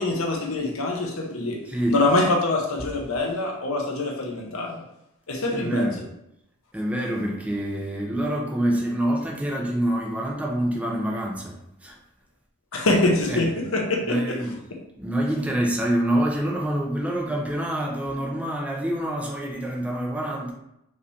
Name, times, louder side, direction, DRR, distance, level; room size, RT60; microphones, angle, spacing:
voice 1, 0.0-4.8 5.3-5.9 12.7-14.4 14.7-14.8, left 2 dB, 80° left, 1 dB, 1.0 m, -24 dB
voice 2, 1.7-2.0 2.8-2.9 5.5-6.0 6.7-12.0 13.3-13.5 14.0-14.5 15.0-20.5, right 1 dB, 5° right, -1 dB, 0.6 m, -26 dB
5.1 x 3.2 x 2.7 m, 0.82 s
head